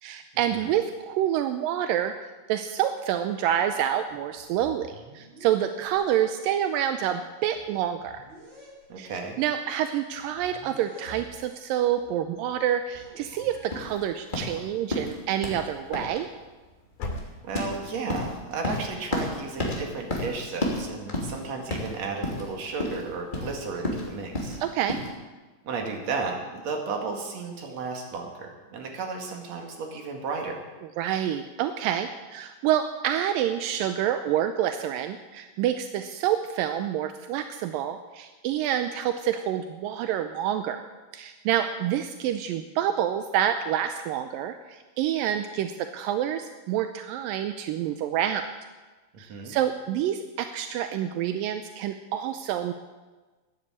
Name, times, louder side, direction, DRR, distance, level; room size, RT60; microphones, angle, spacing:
voice 1, 0.0-2.2 2.5-8.2 9.0-9.1 9.4-16.3 24.6-25.0 31.0-40.8 41.1-48.5 49.2-52.7, right 10 dB, 85° right, 8 dB, 2.4 m, -27 dB
sound 1, 3.6-3.8 4.1-5.9 6.8-6.9 7.2-8.9 9.6-11.5 11.9-13.6, right 1 dB, 35° right, 6.0 m, -50 dB
voice 2, 8.9-9.4 17.4-24.6 25.6-30.6 49.3-49.5, right 4 dB, 55° right, 2 dB, 3.1 m, -34 dB
sound 2, 12.8-14.0 14.4-15.1 16.1-16.6 16.9-17.8, left 2 dB, 90° left, 4.2 m, -40 dB
sound 3, 13.7-25.1, left 1 dB, 15° left, 2.5 m, -32 dB
14.5 x 9.9 x 8.6 m, 1.3 s
omnidirectional pair, 4.0 m